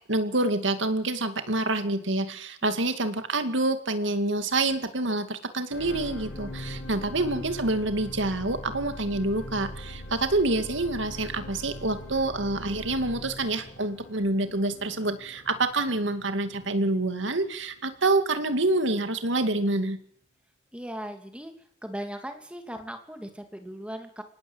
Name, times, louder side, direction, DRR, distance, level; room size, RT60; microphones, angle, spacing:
voice 1, 0.1-20.0, right 2 dB, 70° right, 9 dB, 2.4 m, -27 dB
sound 1, 5.7-18.1 18.7-18.8, left 1 dB, 85° left, 7.8 m, -41 dB
voice 2, 6.9-7.3 20.7-21.5 21.8-24.2, equal, 5° right, 5 dB, 2.7 m, -39 dB
25.0 x 18.5 x 8.1 m, 0.67 s
head